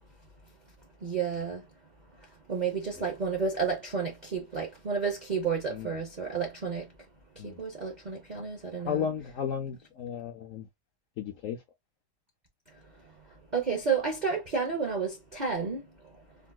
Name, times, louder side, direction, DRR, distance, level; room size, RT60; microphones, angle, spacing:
voice 1, 1.0-1.6 2.5-6.8 7.4-9.0 13.5-15.8, right 5 dB, 65° right, 0.4 m, -31 dB
voice 2, 8.8-10.7 11.2-11.6, left 8 dB, 70° left, 0.7 m, -34 dB
3.8 x 2.4 x 2.2 m
omnidirectional pair, 1.8 m